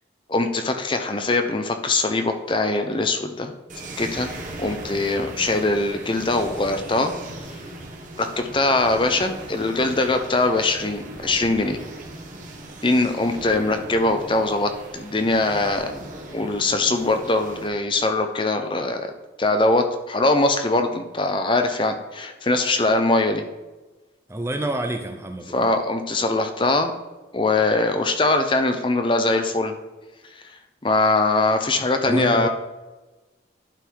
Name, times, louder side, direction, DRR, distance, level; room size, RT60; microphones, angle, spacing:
voice 1, 0.3-3.5 4.0-4.3 4.6-7.1 8.2-11.8 12.8-15.9 16.3-19.1 19.4-23.4 25.5-26.9 27.3-29.7 30.8-32.5, left 2 dB, 25° left, 6 dB, 0.7 m, -22 dB
sound 1, 3.7-17.7, right 1 dB, 45° right, 1.5 m, -38 dB
voice 2, 24.3-25.7 32.1-32.5, right 1 dB, 15° right, 5 dB, 0.5 m, -27 dB
11.5 x 4.1 x 4.6 m, 1.2 s
head